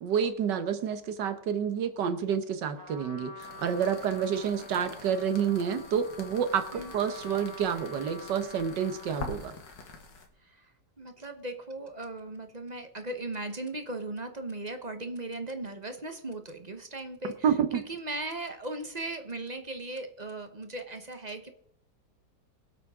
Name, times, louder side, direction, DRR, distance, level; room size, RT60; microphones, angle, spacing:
voice 1, 0.0-9.5 17.4-17.8, right 7 dB, 75° right, 10 dB, 1.6 m, -29 dB
Trumpet, 2.8-9.4, left 1 dB, 10° right, 1.8 m, -47 dB
sound 1, 3.4-10.3, left 3 dB, 90° left, 2.4 m, -45 dB
voice 2, 11.0-17.4 17.7-21.5, right 2 dB, 30° right, 7 dB, 1.0 m, -38 dB
23.5 x 8.3 x 3.6 m, 0.69 s
omnidirectional pair, 1.9 m